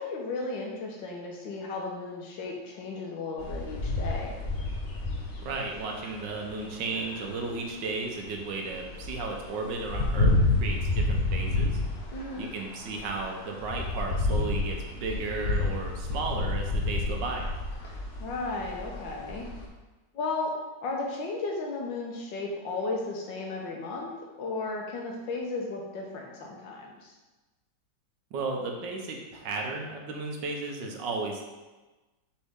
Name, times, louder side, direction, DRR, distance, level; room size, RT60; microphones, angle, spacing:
voice 1, 0.0-4.3 12.1-12.5 17.8-18.0 18.2-19.5 20.1-20.5 20.8-24.1 24.4-27.1, left 3 dB, 80° left, -1 dB, 1.8 m, -34 dB
sound 1, 3.4-8.3 8.6-19.7, left 2 dB, 45° left, 1.1 m, -30 dB
voice 2, 5.4-11.8 12.4-17.5 28.3-31.4, right 3 dB, 75° right, 1 dB, 1.5 m, -34 dB
7.1 x 4.3 x 3.7 m, 1.2 s
omnidirectional pair, 2.0 m